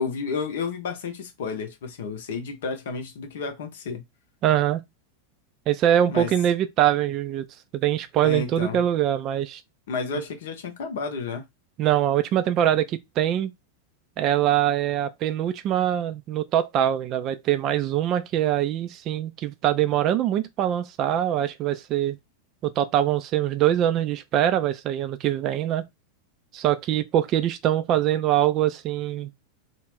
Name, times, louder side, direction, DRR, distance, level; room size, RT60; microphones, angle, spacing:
voice 1, 0.0-4.0 6.1-6.3 8.2-8.8 9.9-11.4, left 5 dB, 60° left, 0.7 m, -31 dB
voice 2, 4.4-4.8 5.7-7.5 7.7-9.6 11.8-13.5 14.2-22.2 22.6-25.8 26.5-29.3, right 11 dB, 35° right, 0.3 m, -23 dB
2.4 x 2.1 x 3.3 m
figure-of-eight pair, 90°, 0 cm